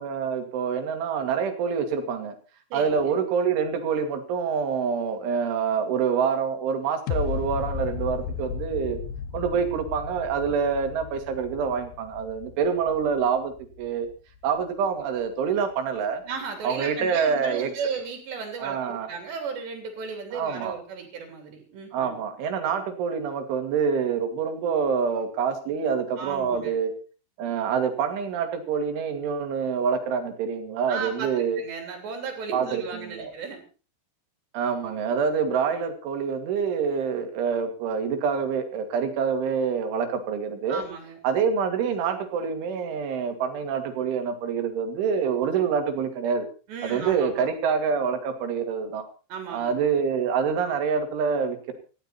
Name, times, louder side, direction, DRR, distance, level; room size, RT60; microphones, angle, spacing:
voice 1, 0.0-2.3 2.7-9.0 9.3-14.1 14.4-16.2 16.6-17.7 18.6-19.1 20.3-20.8 21.9-26.9 27.4-31.6 32.5-33.3 34.5-40.8 41.2-46.5 46.8-49.0 49.5-51.7, right 6 dB, 80° right, 6 dB, 4.8 m, -26 dB
voice 2, 2.7-3.1 16.3-22.2 26.2-26.7 30.9-31.3 31.6-33.6 40.7-41.2 46.7-47.6 49.3-49.8, right 5 dB, 65° right, 4 dB, 5.3 m, -35 dB
sound 1, 7.1-14.1 14.6-14.7, left 7 dB, 70° left, 2.5 m, -34 dB
18.5 x 15.0 x 4.3 m, 0.37 s
omnidirectional pair, 5.4 m